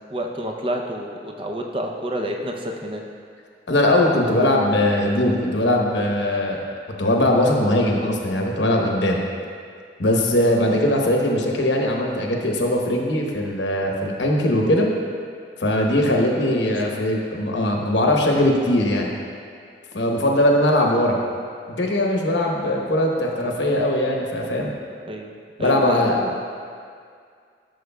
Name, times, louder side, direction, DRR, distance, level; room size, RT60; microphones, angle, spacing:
voice 1, 0.1-3.0 16.5-16.6 16.9-17.1 25.1-25.3 25.6-26.3, right 1 dB, 30° right, 2 dB, 0.6 m, -29 dB
voice 2, 3.7-9.2 10.0-14.9 15.6-19.1 19.9-21.2 21.8-24.7 25.6-26.2, left 1 dB, 90° left, 0 dB, 1.0 m, -20 dB
13.0 x 6.3 x 2.3 m, 2.2 s
head